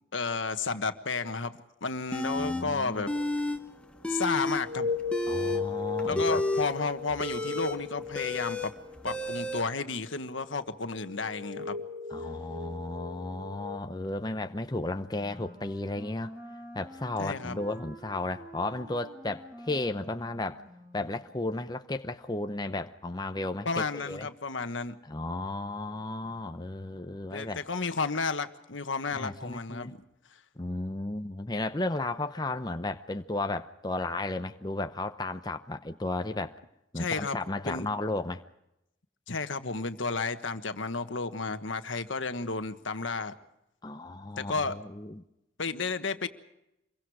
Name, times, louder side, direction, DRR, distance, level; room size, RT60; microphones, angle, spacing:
voice 1, 0.1-3.1 4.1-4.9 6.1-8.7 9.0-11.8 17.2-17.6 23.6-25.0 27.3-30.0 36.9-37.4 37.6-37.9 39.3-43.3 44.4-44.7 45.6-46.3, left 4 dB, 85° left, 1.4 m, -32 dB
sound 1, 2.1-2.6 3.0-3.6 3.9-4.6 5.0-9.6, left 1 dB, 5° left, 1.3 m, -31 dB
voice 2, 2.4-3.1 5.3-6.4 12.1-16.3 16.7-20.6 20.9-24.3 25.0-27.6 29.1-29.9 30.6-36.5 36.9-38.4 43.8-45.2, left 2 dB, 20° left, 0.7 m, -34 dB
sound 2, 2.6-3.3 4.5-9.3 10.2-10.3 10.5-13.8, left 5 dB, 50° right, 1.1 m, -37 dB
Wind instrument woodwind instrument, 15.1-21.3, equal, 15° right, 4.3 m, -48 dB
26.5 x 23.0 x 4.8 m
head